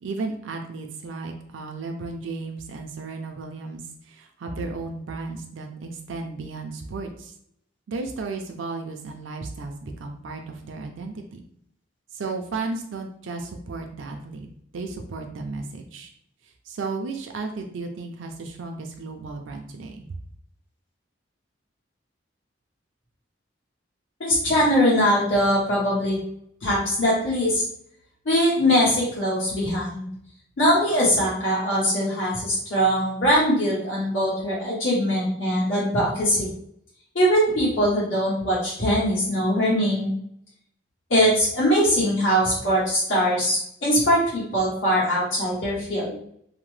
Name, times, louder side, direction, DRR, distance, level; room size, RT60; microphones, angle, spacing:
voice 1, 0.0-3.8 4.1-7.3 7.9-11.4 12.1-14.5 14.7-16.1 16.7-20.1, right 3 dB, 80° right, 4 dB, 0.4 m, -34 dB
voice 2, 24.2-26.2 26.6-27.6 28.2-30.1 30.6-36.5 37.1-40.1 41.1-46.2, equal, 80° left, -7 dB, 1.3 m, -21 dB
2.8 x 2.1 x 3.1 m, 0.68 s
head